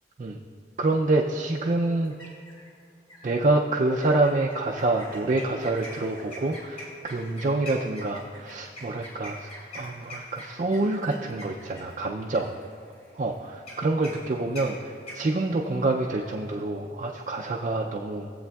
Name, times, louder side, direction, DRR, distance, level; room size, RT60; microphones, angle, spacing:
voice 1, 0.8-2.2 3.2-9.5 9.7-12.5 13.2-18.3, right 2 dB, 40° right, 0 dB, 0.4 m, -27 dB
sound 1, 2.0-2.7 3.1-3.4 4.0-15.9, left 1 dB, 35° left, 2.5 m, -44 dB
16.5 x 7.8 x 2.3 m, 2.2 s
head